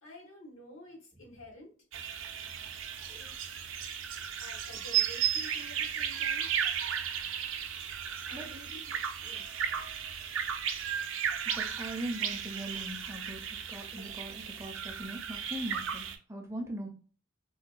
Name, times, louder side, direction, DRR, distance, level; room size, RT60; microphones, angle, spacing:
voice 1, 0.0-1.7 3.1-3.7 4.4-6.5 8.3-9.5, left 1 dB, 85° left, 0 dB, 1.2 m, -51 dB
sound 1, 1.9-16.2, right 8 dB, 80° right, 0.4 m, -35 dB
voice 2, 11.6-16.9, right 1 dB, 15° right, 2 dB, 0.4 m, -40 dB
3.7 x 2.1 x 2.4 m, 0.38 s
head